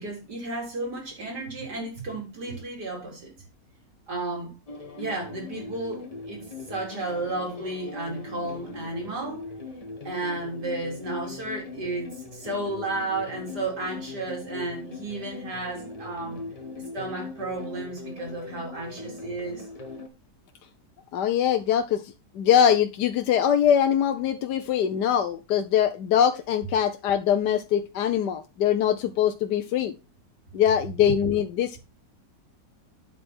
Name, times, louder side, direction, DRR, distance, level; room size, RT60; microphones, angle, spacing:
voice 1, 0.0-3.3 4.1-4.5 5.0-9.4 10.0-16.4 16.9-19.7, right 2 dB, 65° right, 4.3 m, -33 dB
sound 1, 4.7-20.1, left 3 dB, 20° left, 1.4 m, -40 dB
voice 2, 21.1-22.0 22.3-29.9 30.5-31.8, left 9 dB, 75° left, 1.3 m, -22 dB
9.0 x 7.7 x 4.3 m
omnidirectional pair, 1.9 m